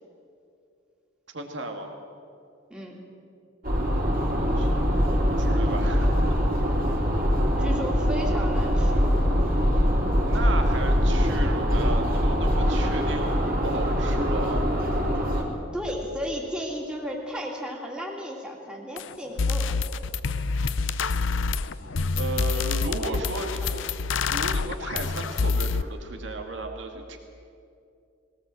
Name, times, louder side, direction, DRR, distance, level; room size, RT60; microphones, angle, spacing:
voice 1, 1.3-1.9 4.4-4.8 5.4-6.4 10.3-14.7 20.2-20.5 22.2-23.9 24.3-27.2, right 2 dB, 60° right, 3 dB, 2.2 m, -34 dB
sound 1, 3.6-15.4, equal, 45° right, 3.8 m, -23 dB
voice 2, 7.6-9.1 15.7-19.8 21.8-22.0 22.3-22.6 23.0-24.0, equal, 5° right, -2 dB, 2.7 m, -35 dB
sound 2, 19.0-19.1 19.4-25.8, left 4 dB, 70° left, 0.6 m, -27 dB
21.5 x 17.5 x 7.8 m, 2.5 s
head